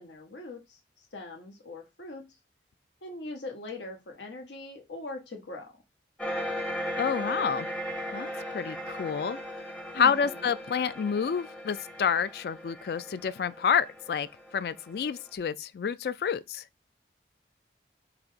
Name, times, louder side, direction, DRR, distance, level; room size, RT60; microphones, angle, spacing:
voice 1, 0.0-2.3 3.0-5.7 9.9-10.5, left 2 dB, 90° left, 1.2 m, -41 dB
sound 1, 6.2-15.2, equal, 5° left, 0.6 m, -37 dB
voice 2, 7.0-7.7 8.1-9.4 9.9-14.3 14.5-16.6, left 7 dB, 60° left, 0.3 m, -29 dB
3.9 x 2.9 x 4.5 m
head